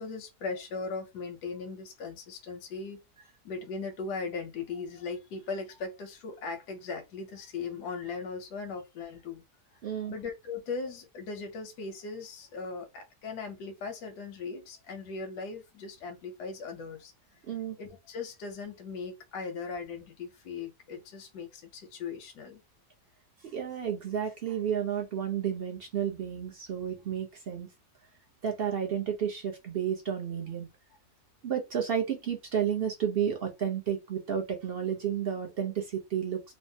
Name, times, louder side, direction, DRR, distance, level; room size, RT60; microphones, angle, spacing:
voice 1, 0.0-3.0 3.4-9.4 9.7-17.1 17.8-22.6, left 4 dB, 85° left, 1.2 m, -38 dB
voice 2, 9.8-10.1 17.4-17.8 23.4-27.7 28.4-30.7 31.4-36.4, right 8 dB, 65° right, 0.6 m, -31 dB
3.3 x 2.1 x 2.6 m
omnidirectional pair, 1.7 m